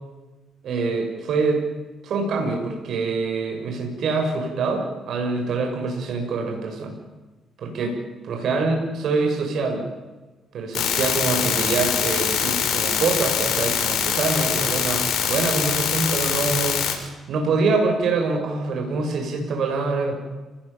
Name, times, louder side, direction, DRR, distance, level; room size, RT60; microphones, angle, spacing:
voice 1, 0.6-1.6 2.0-7.0 7.6-8.0 8.2-9.8 10.5-16.8 17.3-20.1, right 4 dB, 70° right, 3 dB, 6.9 m, -25 dB
sound 1, 10.7-16.9, left 8 dB, 70° left, 6.0 m, -23 dB
30.0 x 20.0 x 7.3 m, 1.2 s
cardioid pair, 90°, 0 cm